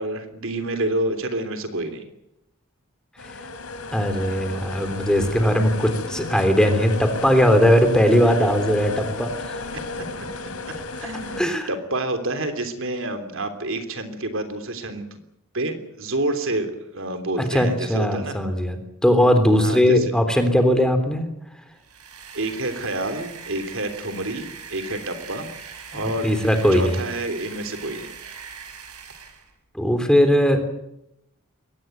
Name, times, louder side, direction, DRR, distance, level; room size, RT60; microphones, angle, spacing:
voice 1, 0.0-2.0 10.7-15.2 15.5-18.3 19.6-20.1 22.3-25.5 25.9-26.3 26.7-28.1, right 1 dB, 60° right, 8 dB, 3.3 m, -28 dB
sound 1, 3.2-11.4, left 3 dB, 75° left, 3.5 m, -33 dB
voice 2, 3.9-9.6 11.4-11.7 17.4-21.3 25.9-27.0 29.7-30.6, equal, 5° left, 7 dB, 3.3 m, -19 dB
sound 2, 21.8-29.5, right 6 dB, 85° right, 5.0 m, -41 dB
22.5 x 18.5 x 9.3 m, 0.83 s
head